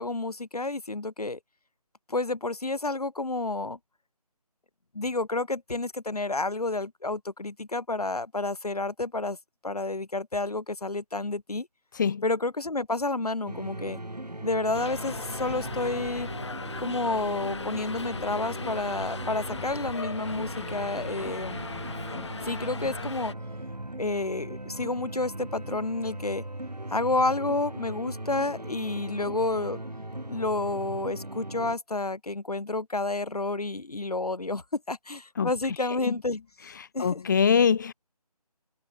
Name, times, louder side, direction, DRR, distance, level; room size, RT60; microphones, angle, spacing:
voice 1, 0.0-1.4 2.1-3.8 4.9-9.4 9.6-11.7 12.2-14.0 14.4-16.3 16.8-21.7 22.4-23.3 24.0-26.4 26.9-29.8 30.3-36.4 36.9-37.2, left 2 dB, 70° left, 2.0 m, -30 dB
sound 1, 13.5-31.8, right 1 dB, 90° right, 3.2 m, -38 dB
Subway metro underground, 14.7-23.3, left 4 dB, 45° left, 5.1 m, -39 dB
voice 2, 35.8-36.2 36.7-37.9, left 6 dB, 30° left, 1.7 m, -24 dB
figure-of-eight pair, 160°, 20 cm